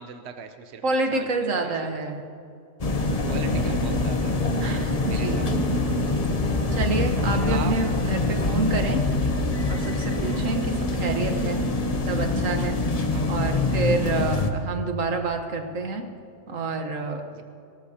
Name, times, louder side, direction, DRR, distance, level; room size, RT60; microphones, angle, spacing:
voice 1, 0.0-1.9 3.3-4.4 5.0-5.8 7.5-7.7 10.2-10.6 13.0-13.4 17.3-17.4, right 7 dB, 60° right, 7 dB, 1.0 m, -39 dB
voice 2, 0.8-2.3 4.6-5.5 6.7-9.0 9.7-11.6 12.1-12.8 13.3-16.1 16.5-17.4, right 3 dB, 80° right, 5 dB, 1.6 m, -28 dB
sound 1, 2.8-14.5, left 2 dB, 35° left, 0.9 m, -25 dB
20.0 x 18.0 x 2.9 m, 2.5 s
omnidirectional pair, 1.3 m